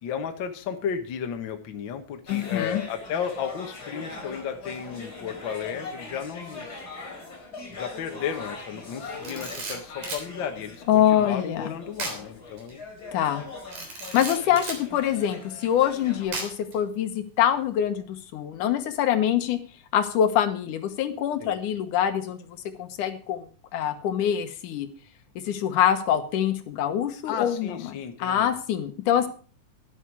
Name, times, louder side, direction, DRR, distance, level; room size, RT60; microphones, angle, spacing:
voice 1, 0.0-6.7 7.7-12.8 21.4-21.6 27.3-28.6, left 7 dB, 50° left, 5 dB, 1.6 m, -33 dB
voice 2, 2.3-2.8 10.9-11.7 13.1-13.4 14.1-19.6 19.9-22.4 22.8-23.5 23.7-24.9 25.4-27.7 28.2-29.3, left 10 dB, 75° left, 9 dB, 2.6 m, -24 dB
sound 1, 2.3-16.3, left 3 dB, 30° left, 3.6 m, -41 dB
Camera, 9.1-10.3 12.0-12.2 12.6-12.7 13.7-14.8 16.3-16.7, right 3 dB, 70° right, 5.0 m, -34 dB
11.5 x 11.0 x 4.8 m, 0.39 s
omnidirectional pair, 3.6 m